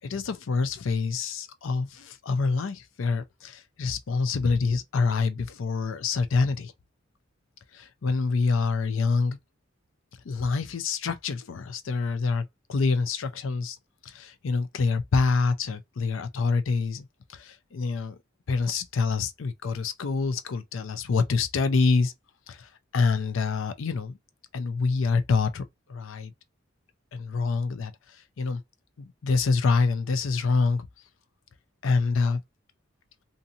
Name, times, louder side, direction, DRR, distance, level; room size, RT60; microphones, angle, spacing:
voice 1, 0.0-6.7 7.7-9.4 10.3-13.8 14.1-17.1 17.3-18.2 18.5-22.1 22.5-22.6 22.9-24.2 24.5-25.6 25.9-26.3 27.1-27.9 28.4-28.6 29.0-30.8 31.8-32.4, left 4 dB, 85° left, 0.5 m, -26 dB
2.7 x 2.6 x 2.5 m
head